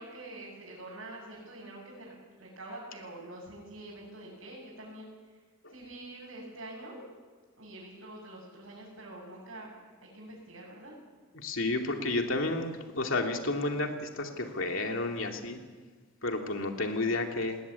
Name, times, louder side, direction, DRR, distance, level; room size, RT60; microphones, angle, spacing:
voice 1, 0.0-5.1 5.7-7.0 7.6-9.7 10.0-11.0, right 1 dB, 75° right, -5 dB, 6.9 m, -46 dB
voice 2, 11.3-15.6 16.2-17.6, left 2 dB, 70° left, 3 dB, 2.7 m, -31 dB
19.5 x 19.0 x 9.6 m, 1.5 s
head